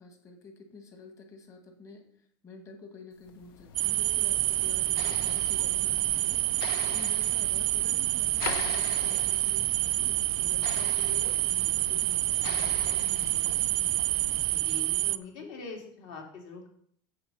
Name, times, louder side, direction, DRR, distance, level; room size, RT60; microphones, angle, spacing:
voice 1, 0.0-2.0 2.4-6.4 6.8-14.0, left 3 dB, 25° left, 4 dB, 1.7 m, -48 dB
sound 1, 3.3-14.8, left 8 dB, 85° left, 0.8 m, -41 dB
sound 2, 3.8-15.2, right 19 dB, 50° right, 0.4 m, -28 dB
voice 2, 14.5-16.7, left 4 dB, 60° left, 0 dB, 3.3 m, -43 dB
8.7 x 7.3 x 5.6 m, 0.63 s
cardioid pair, 160°, 12 cm